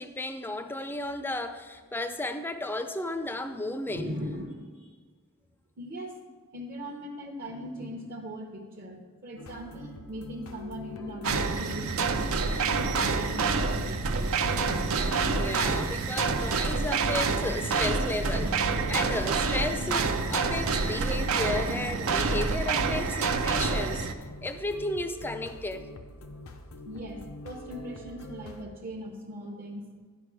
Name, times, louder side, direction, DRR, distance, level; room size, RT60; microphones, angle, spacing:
voice 1, 0.0-4.1 15.3-24.1 24.4-25.9, left 2 dB, 10° left, 9 dB, 0.5 m, -33 dB
voice 2, 3.9-5.0 5.8-6.2 6.5-14.3 26.8-29.9, equal, 50° right, -1 dB, 0.9 m, -40 dB
sound 1, 9.4-28.6, left 1 dB, 90° left, 0.7 m, -45 dB
sound 2, 11.2-24.1, right 4 dB, 75° right, 0.6 m, -27 dB
11.5 x 5.1 x 4.8 m, 1.5 s
head